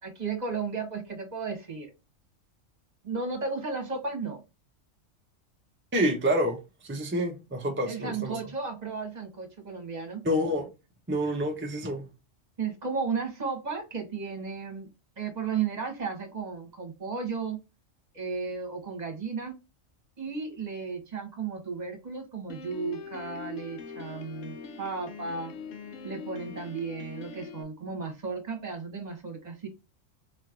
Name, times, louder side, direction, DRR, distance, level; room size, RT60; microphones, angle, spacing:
voice 1, 0.0-1.9 3.0-4.4 7.9-10.2 12.6-14.9 15.2-17.6 18.1-19.6 20.2-25.5 26.0-29.7, right 5 dB, 35° right, 1.2 m, -34 dB
voice 2, 5.9-6.6 6.8-8.4 10.2-10.7 11.1-12.1, equal, 20° right, 0.4 m, -28 dB
Piano, 22.5-27.6, left 5 dB, 75° left, 1.0 m, -42 dB
4.2 x 3.1 x 2.4 m
omnidirectional pair, 1.3 m